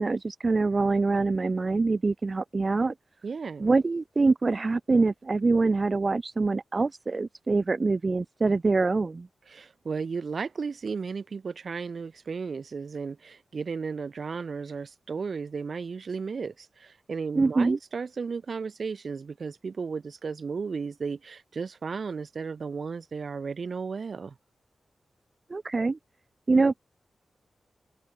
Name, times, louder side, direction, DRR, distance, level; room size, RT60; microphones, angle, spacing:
voice 1, 0.0-2.9 3.6-9.3 17.4-17.8 25.5-26.0 26.5-26.8, right 3 dB, 40° right, 0.7 m, -24 dB
voice 2, 3.2-3.7 9.5-24.3, right 5 dB, 60° right, 1.0 m, -34 dB
open air
wide cardioid pair, 85°, 0 cm